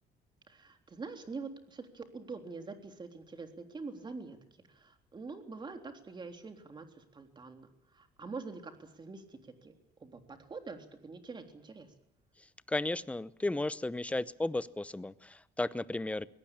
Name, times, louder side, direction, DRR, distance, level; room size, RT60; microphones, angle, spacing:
voice 1, 0.5-7.7 7.9-9.7 10.0-11.9, right 4 dB, 25° right, 5 dB, 3.5 m, -45 dB
voice 2, 12.7-16.3, left 2 dB, 5° left, 16 dB, 0.8 m, -34 dB
22.5 x 18.0 x 8.8 m, 0.79 s
cardioid pair, 110°, 17 cm